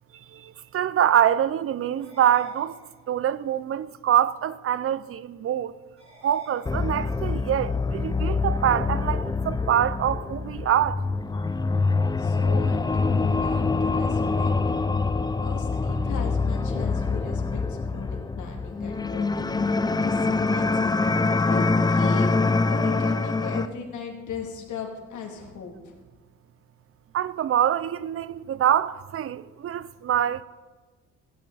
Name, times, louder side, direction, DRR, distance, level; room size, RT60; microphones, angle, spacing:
voice 1, 0.3-2.7 3.1-5.7 6.2-11.0 27.1-30.4, right 10 dB, 50° right, 0.5 m, -25 dB
sound 1, 2.0-3.4 6.0-7.4, right 1 dB, 20° right, 4.4 m, -52 dB
sound 2, 6.7-23.7, left 3 dB, 15° left, 0.5 m, -25 dB
voice 2, 12.2-14.5 15.4-19.8 20.0-22.3 22.7-26.0, left 5 dB, 75° left, 2.5 m, -38 dB
16.0 x 9.6 x 4.0 m
cardioid pair, 90°, 30 cm